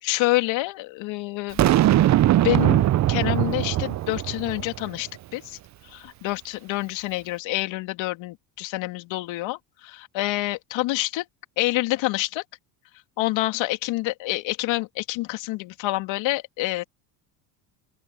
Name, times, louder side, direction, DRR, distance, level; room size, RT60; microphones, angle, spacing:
voice 1, 0.0-1.6 2.4-5.6 5.8-11.2 11.6-12.4 13.2-16.8, left 19 dB, 70° left, 2.8 m, -27 dB
Boom, 1.6-4.9, right 13 dB, 35° right, 0.6 m, -20 dB
open air
supercardioid pair, 90°, 47 cm